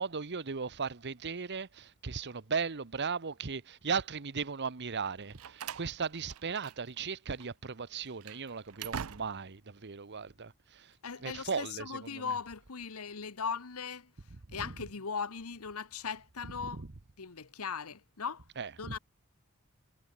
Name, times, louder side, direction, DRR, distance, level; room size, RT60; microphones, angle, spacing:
voice 1, 0.0-10.9 11.2-12.3 14.3-14.7 16.6-16.9 18.6-19.0, right 5 dB, 50° right, 1.0 m, -37 dB
Slam, 5.0-7.1 7.3-7.5 8.0-9.6, right 7 dB, 70° right, 0.6 m, -44 dB
voice 2, 11.0-14.1 14.5-16.8 17.2-18.4 18.8-19.0, left 6 dB, 80° left, 1.2 m, -38 dB
head